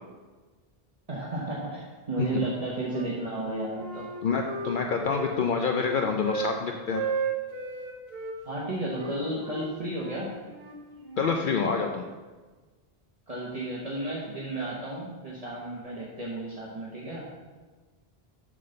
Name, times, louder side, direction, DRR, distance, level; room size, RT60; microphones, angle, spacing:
voice 1, 1.1-4.1 8.4-10.3 13.3-17.3, right 2 dB, 40° right, -5 dB, 1.1 m, -33 dB
Wind instrument woodwind instrument, 2.3-3.1 3.4-6.5 6.9-8.4 8.9-11.4, right 4 dB, 70° right, 1.3 m, -35 dB
voice 2, 4.2-7.0 11.2-12.1, left 5 dB, 60° left, 3 dB, 0.7 m, -27 dB
7.5 x 3.9 x 6.5 m, 1.3 s
omnidirectional pair, 1.0 m